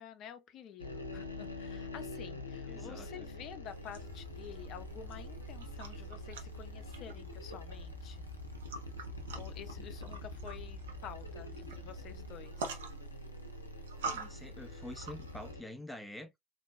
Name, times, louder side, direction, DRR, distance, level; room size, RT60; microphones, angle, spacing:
voice 1, 0.0-8.2 9.3-12.8, left 8 dB, 45° left, 0.7 m, -50 dB
sound 1, 0.8-15.6, left 2 dB, 85° left, 0.6 m, -46 dB
voice 2, 2.7-3.3 9.8-10.1 14.1-16.3, left 1 dB, ahead, 0.7 m, -47 dB
sound 2, 3.7-15.5, right 3 dB, 70° right, 0.8 m, -47 dB
sound 3, 4.0-12.3, equal, 30° right, 0.9 m, -49 dB
3.7 x 2.7 x 2.2 m
figure-of-eight pair, 75°, 0 cm